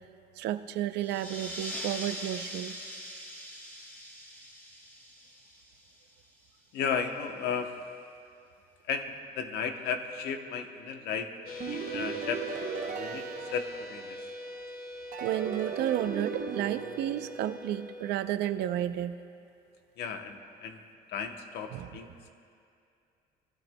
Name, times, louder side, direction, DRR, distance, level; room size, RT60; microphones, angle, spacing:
voice 1, 0.4-2.8 15.2-19.2 21.7-21.9, right 12 dB, 80° right, 11 dB, 0.5 m, -32 dB
sound 1, 1.0-6.2, equal, 10° left, 1.7 m, -42 dB
voice 2, 6.7-7.8 8.8-11.4 11.7-12.5 12.8-14.2 20.0-20.8 21.1-22.3, left 6 dB, 80° left, 6 dB, 0.9 m, -35 dB
sound 2, 11.5-18.2, left 2 dB, 60° left, 1.4 m, -43 dB
sound 3, 11.6-14.5 15.1-18.0, right 6 dB, 50° right, 0.8 m, -38 dB
20.5 x 12.0 x 2.2 m, 2.5 s
cardioid pair, 110°, 17 cm